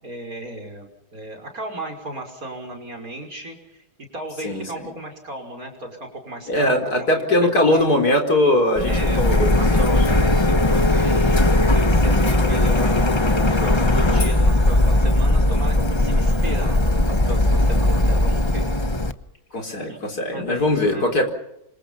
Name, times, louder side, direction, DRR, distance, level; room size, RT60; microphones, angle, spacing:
voice 1, 0.0-3.8 4.1-7.9 8.8-16.8 17.1-18.7 19.9-20.0 20.3-21.1, right 1 dB, 45° right, 3 dB, 6.2 m, -35 dB
voice 2, 6.5-9.9 19.5-21.3, left 1 dB, 50° left, 4 dB, 4.9 m, -20 dB
Printer, 8.8-19.1, left 1 dB, 20° left, 0.8 m, -18 dB
28.0 x 25.5 x 5.8 m, 0.85 s
omnidirectional pair, 2.1 m